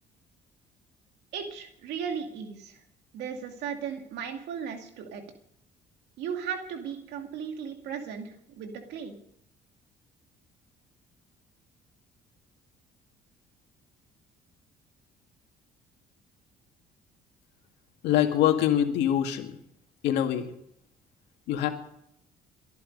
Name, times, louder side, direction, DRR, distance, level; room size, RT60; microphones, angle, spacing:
voice 1, 1.3-2.8 3.1-5.2 6.2-9.1, right 7 dB, 80° right, 5 dB, 2.4 m, -36 dB
voice 2, 18.0-19.5 20.0-20.5 21.5-21.7, left 10 dB, 85° left, 4 dB, 2.1 m, -24 dB
22.5 x 11.0 x 5.3 m, 0.75 s
cardioid pair, 110°, 17 cm